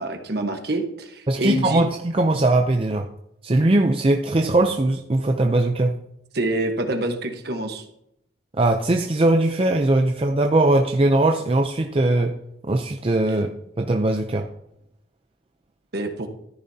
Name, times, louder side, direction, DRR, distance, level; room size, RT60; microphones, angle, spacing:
voice 1, 0.0-1.9 6.3-7.8 15.9-16.3, right 1 dB, 55° right, 5 dB, 1.3 m, -26 dB
voice 2, 1.3-3.1 3.4-6.0 8.5-12.3 12.6-13.5 13.8-14.5, right 2 dB, 30° right, 4 dB, 0.5 m, -20 dB
13.5 x 10.5 x 2.8 m, 0.78 s
head